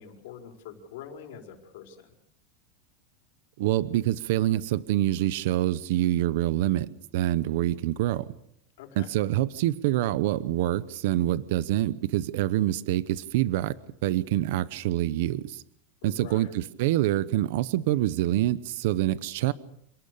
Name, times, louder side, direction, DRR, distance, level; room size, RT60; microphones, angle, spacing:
voice 1, 0.0-2.1 8.8-9.1 16.0-16.5, left 8 dB, 65° left, 4 dB, 5.0 m, -44 dB
voice 2, 3.6-6.9 7.1-8.3 9.0-13.8 14.0-15.6 16.0-19.5, right 14 dB, 60° right, 17 dB, 0.9 m, -26 dB
28.0 x 19.0 x 6.9 m, 0.70 s
supercardioid pair, 160°, 0 cm